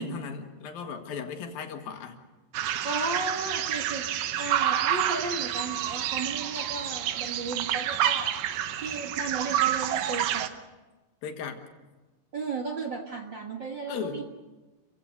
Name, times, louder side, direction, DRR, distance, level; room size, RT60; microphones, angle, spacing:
voice 1, 0.0-2.2 11.2-11.7 13.9-14.2, left 6 dB, 90° left, 5 dB, 3.6 m, -36 dB
sound 1, 2.5-10.5, right 11 dB, 75° right, 2.4 m, -28 dB
voice 2, 2.8-4.1 4.4-8.4 8.8-10.5 12.3-14.2, right 3 dB, 45° right, 2 dB, 1.7 m, -34 dB
29.5 x 16.5 x 6.5 m, 1.2 s
omnidirectional pair, 4.0 m